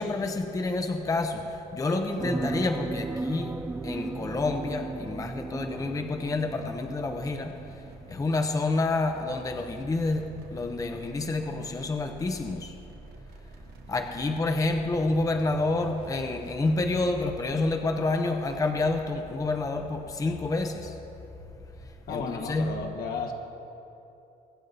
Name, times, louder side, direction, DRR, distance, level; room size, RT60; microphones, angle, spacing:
voice 1, 0.0-3.5 3.8-7.5 8.1-12.7 13.9-20.9 22.1-22.8, left 2 dB, 20° left, 5 dB, 0.8 m, -28 dB
sound 1, 2.2-8.2 8.6-8.7, right 3 dB, 10° right, 0.3 m, -36 dB
sound 2, 6.9-17.3, right 4 dB, 70° right, 1.2 m, -47 dB
voice 2, 22.1-23.3, left 4 dB, 65° left, 3 dB, 1.5 m, -33 dB
23.0 x 7.8 x 4.1 m, 2.9 s
cardioid pair, 110°, 17 cm